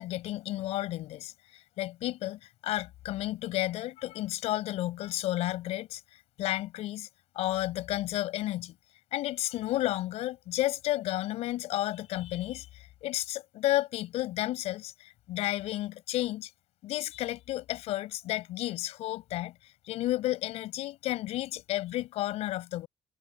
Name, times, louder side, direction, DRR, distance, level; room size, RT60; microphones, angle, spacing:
voice 1, 0.0-6.0 6.4-7.1 7.4-8.7 9.1-16.5 16.8-19.5 19.9-22.9, left 15 dB, 80° left, 5.4 m, -32 dB
cardioid pair, 155°, 11 cm